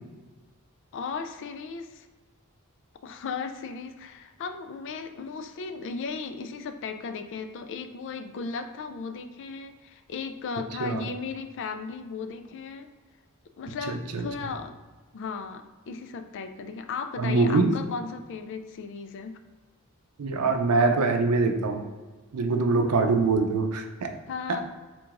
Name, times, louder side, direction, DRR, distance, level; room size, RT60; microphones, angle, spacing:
voice 1, 0.9-2.1 3.0-12.9 13.6-14.8 15.1-19.4 24.3-24.6, left 5 dB, 55° left, 8 dB, 0.4 m, -36 dB
voice 2, 13.9-14.2 17.2-17.8 20.2-21.8 22.3-24.1 24.5-24.6, right 3 dB, 90° right, 5 dB, 0.5 m, -24 dB
3.7 x 2.5 x 4.6 m, 1.3 s
head